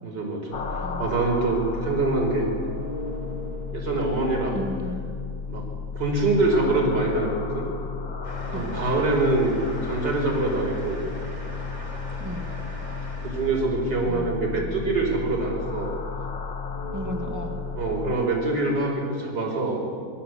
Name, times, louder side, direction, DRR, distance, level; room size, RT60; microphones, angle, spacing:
voice 1, 0.0-2.5 3.7-4.6 5.5-5.7 5.9-7.7 8.5-11.0 13.2-16.0 17.8-19.8, right 2 dB, 65° right, 0 dB, 5.7 m, -25 dB
sound 1, 0.5-18.1, left 5 dB, 75° left, 2.5 m, -33 dB
voice 2, 4.5-5.0 8.5-8.9 12.2-12.5 14.1-14.8 16.9-17.6, equal, 10° right, 2 dB, 2.6 m, -35 dB
sound 2, 8.2-14.2, right 1 dB, 15° left, 4.4 m, -40 dB
27.0 x 23.0 x 8.2 m, 2.2 s
omnidirectional pair, 2.0 m